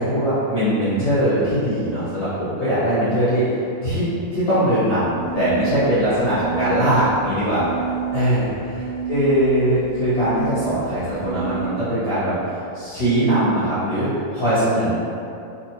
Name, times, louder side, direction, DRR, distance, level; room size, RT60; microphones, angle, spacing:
voice 1, 0.0-7.6 8.1-15.0, equal, 60° left, -14 dB, 0.9 m, -21 dB
sound 1, 5.2-11.7, right 8 dB, 80° right, 2.0 m, -29 dB
4.2 x 3.5 x 2.9 m, 2.7 s
omnidirectional pair, 3.5 m